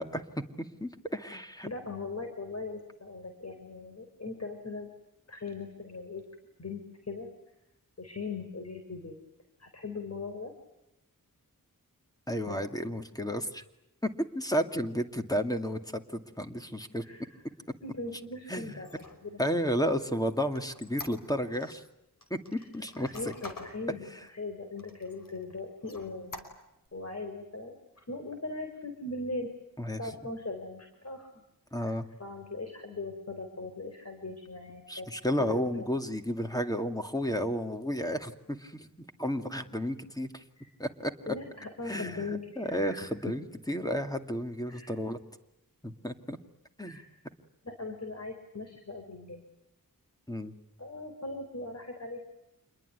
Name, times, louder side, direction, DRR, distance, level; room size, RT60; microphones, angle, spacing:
voice 1, 0.0-1.7 12.3-13.6 14.0-17.0 18.5-18.8 19.4-21.8 22.3-23.3 29.8-30.0 31.7-32.1 34.9-38.9 39.2-40.4 40.8-41.3 41.9-45.2 45.8-46.4 46.8-47.0 50.3-50.5, equal, 10° left, 6 dB, 2.3 m, -32 dB
voice 2, 1.6-4.9 5.3-6.2 6.6-7.3 8.0-9.2 9.6-10.5 12.5-12.6 17.0-17.3 17.8-19.4 22.6-22.7 23.0-26.5 26.9-29.5 30.0-31.3 31.9-32.0 32.2-35.1 35.4-35.7 40.6-40.7 41.3-43.0 44.7-45.0 46.8-47.1 47.6-49.4 50.8-52.2, left 3 dB, 45° left, 5 dB, 4.2 m, -40 dB
Squeak, 18.7-21.8 22.2-23.8 24.3-24.4 24.8-25.4 25.8-26.9, left 2 dB, 70° left, 5.2 m, -46 dB
28.0 x 22.0 x 9.5 m, 0.88 s
wide cardioid pair, 95°, 34 cm